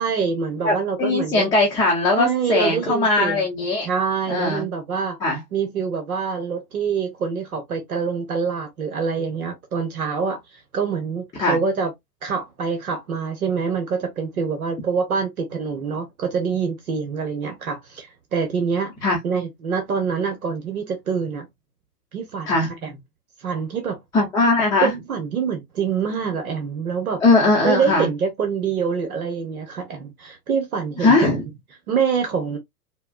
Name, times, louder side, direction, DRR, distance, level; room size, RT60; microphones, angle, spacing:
voice 1, 0.0-1.5 2.1-3.4 3.8-5.2 5.5-11.9 12.2-18.9 19.2-21.5 22.1-22.9 23.4-24.0 24.8-27.2 27.6-31.4 31.9-32.6, right 6 dB, 60° right, 1.0 m, -25 dB
voice 2, 0.6-3.9 4.3-4.6 5.2-5.4 11.4-11.6 19.0-19.2 22.5-22.7 24.1-24.9 27.2-28.1 31.0-31.4, left 2 dB, 10° left, 0.7 m, -19 dB
4.4 x 2.2 x 2.2 m
figure-of-eight pair, 110°, 49 cm